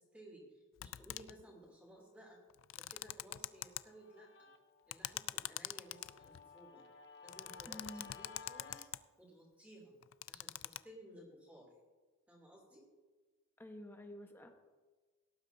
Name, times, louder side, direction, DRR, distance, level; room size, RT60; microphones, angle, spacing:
voice 1, 0.0-2.4 2.7-4.5 4.9-6.8 7.2-8.9 9.2-9.9 10.3-11.7 12.3-12.8, right 1 dB, 5° right, -2 dB, 2.8 m, -58 dB
sound 1, 0.8-1.4 2.5-3.8 4.9-6.5 7.3-9.0 10.0-10.8, left 14 dB, 75° left, 0.4 m, -43 dB
Guitar, 3.4-8.9, left 5 dB, 55° left, 1.0 m, -57 dB
voice 2, 7.7-8.1 13.6-14.5, left 1 dB, 10° left, 4 dB, 1.0 m, -50 dB
18.0 x 11.5 x 2.7 m, 1.3 s
head